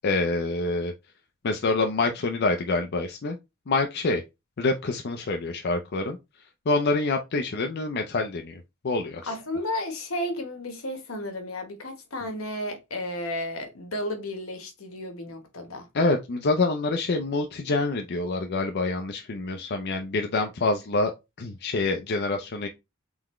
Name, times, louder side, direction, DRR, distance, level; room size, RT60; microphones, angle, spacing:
voice 1, 0.0-0.9 1.4-3.4 3.7-4.2 4.6-6.2 6.7-9.3 15.9-21.1 21.4-22.7, left 3 dB, 50° left, 0.5 m, -26 dB
voice 2, 9.3-15.9, left 1 dB, 80° left, 1.1 m, -33 dB
3.9 x 3.4 x 3.1 m
head